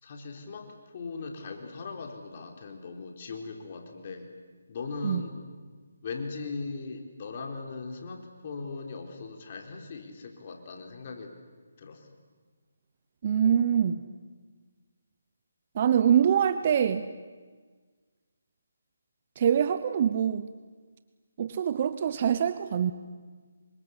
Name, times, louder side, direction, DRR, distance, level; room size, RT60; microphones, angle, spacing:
voice 1, 0.0-4.3 4.7-5.3 6.0-11.3 11.8-12.1, left 4 dB, 40° left, 4 dB, 3.9 m, -39 dB
voice 2, 13.2-14.0 15.7-17.1 19.4-20.5 21.4-22.9, right 8 dB, 40° right, 12 dB, 1.1 m, -24 dB
27.5 x 24.5 x 8.3 m, 1.5 s
figure-of-eight pair, 160°, 0 cm